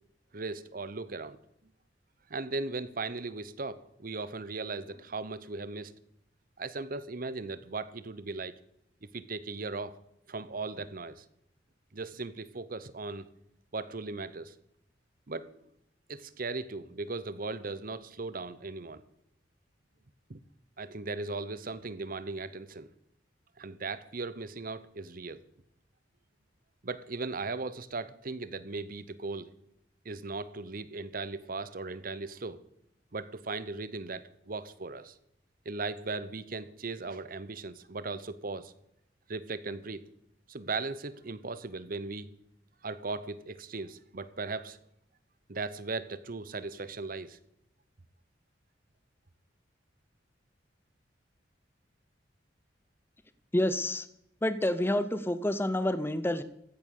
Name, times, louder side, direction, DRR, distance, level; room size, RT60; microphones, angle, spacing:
voice 1, 0.3-1.4 2.3-5.9 6.6-8.5 9.0-10.0 10.3-11.2 11.9-13.3 13.7-14.6 15.3-15.6 16.1-19.0 20.3-20.4 20.8-22.9 23.6-25.4 26.8-29.5 30.0-32.6 33.1-35.2 35.6-38.7 39.3-40.1 40.5-42.3 42.8-44.8 45.5-47.4, right 3 dB, 50° right, 15 dB, 0.9 m, -38 dB
voice 2, 53.5-54.1 54.4-56.4, left 1 dB, 10° left, 12 dB, 0.7 m, -28 dB
15.0 x 9.0 x 6.6 m, 0.77 s
head